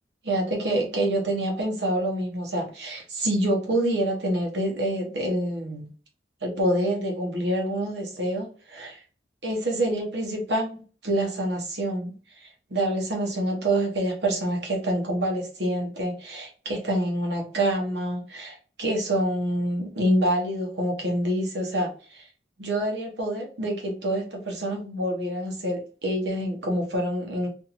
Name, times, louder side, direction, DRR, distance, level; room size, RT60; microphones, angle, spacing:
voice 1, 0.2-5.9 6.4-9.0 9.4-22.3 22.6-27.5, right 1 dB, 75° right, 0 dB, 1.0 m, -27 dB
2.7 x 2.6 x 2.5 m, 0.39 s
head